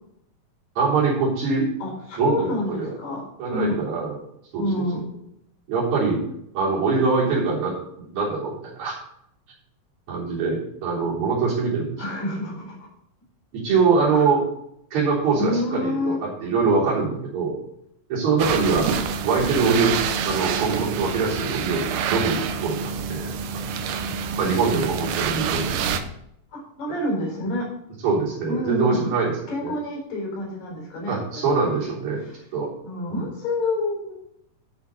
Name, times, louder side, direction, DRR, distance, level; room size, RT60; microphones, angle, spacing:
voice 1, 0.8-1.7 2.2-2.9 3.4-4.2 4.5-4.8 5.7-6.2 6.5-7.8 8.1-9.0 10.1-12.0 13.5-14.4 14.9-17.5 18.1-18.9 19.2-20.0 20.2-23.3 24.4-25.9 28.0-29.3 29.6-29.7 31.1-32.2 32.5-32.7 33.1-33.2, right 4 dB, 60° right, -7 dB, 4.9 m, -23 dB
voice 2, 1.8-3.7 4.6-5.0 12.0-12.9 14.1-14.3 15.4-16.2 26.5-27.6 28.5-31.5 32.2-32.4 32.8-34.0, left 2 dB, 90° left, -2 dB, 6.1 m, -28 dB
sound 1, 18.4-26.0, right 6 dB, 85° right, 2.5 m, -27 dB
12.5 x 7.0 x 4.0 m, 0.75 s
omnidirectional pair, 3.8 m